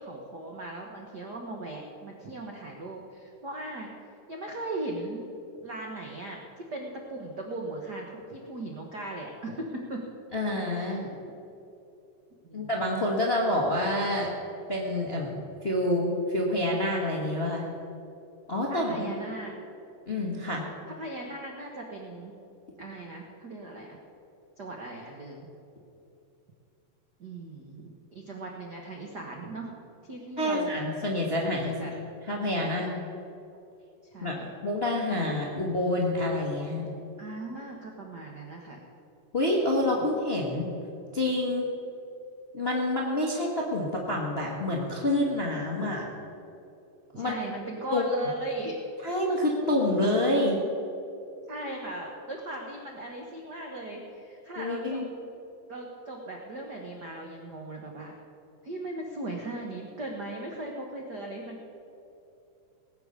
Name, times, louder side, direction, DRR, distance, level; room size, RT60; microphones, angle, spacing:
voice 1, 0.0-3.9 4.3-5.3 5.6-10.0 10.7-11.0 12.4-12.7 18.7-19.5 20.9-22.3 22.8-24.0 24.6-25.5 27.2-29.7 30.0-30.7 31.4-31.9 34.1-34.4 37.2-38.8 47.1-48.8 51.5-55.1 55.7-58.1 58.6-61.6, right 2 dB, 70° right, 0 dB, 0.9 m, -38 dB
voice 2, 10.3-11.1 12.5-14.3 14.7-17.7 18.5-19.1 20.1-20.6 30.4-31.8 32.3-32.9 34.2-36.9 39.3-40.6 41.1-41.6 42.5-46.0 47.1-47.4 47.9-48.0 49.0-50.6 54.6-55.1, left 1 dB, 40° left, -2 dB, 0.8 m, -27 dB
19.0 x 8.5 x 6.6 m, 2.8 s
omnidirectional pair, 3.8 m